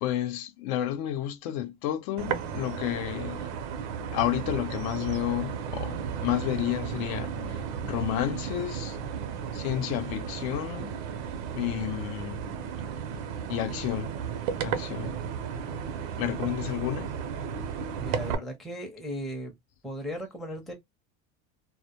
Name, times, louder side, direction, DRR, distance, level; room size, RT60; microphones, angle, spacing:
voice 1, 0.0-3.4 4.1-7.3 7.8-9.0 9.5-10.9 11.5-12.4 13.5-14.1 14.6-15.1 16.2-17.1, left 13 dB, 65° left, 0.5 m, -31 dB
sound 1, 2.2-18.4, right 7 dB, 75° right, 0.6 m, -34 dB
voice 2, 18.0-19.5 19.8-20.7, equal, ahead, 0.5 m, -36 dB
2.1 x 2.1 x 2.7 m
supercardioid pair, 150°, 35 cm